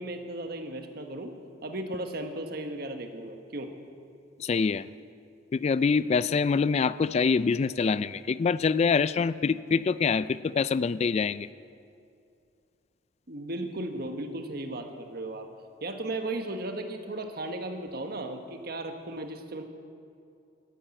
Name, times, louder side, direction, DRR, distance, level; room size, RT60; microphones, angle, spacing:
voice 1, 0.0-1.3 1.6-3.7 13.3-15.5 15.8-19.6, right 1 dB, 55° right, 6 dB, 1.3 m, -35 dB
voice 2, 4.4-4.9 5.5-11.5, left 5 dB, 35° left, 17 dB, 0.3 m, -25 dB
13.5 x 10.0 x 8.9 m, 2.5 s
head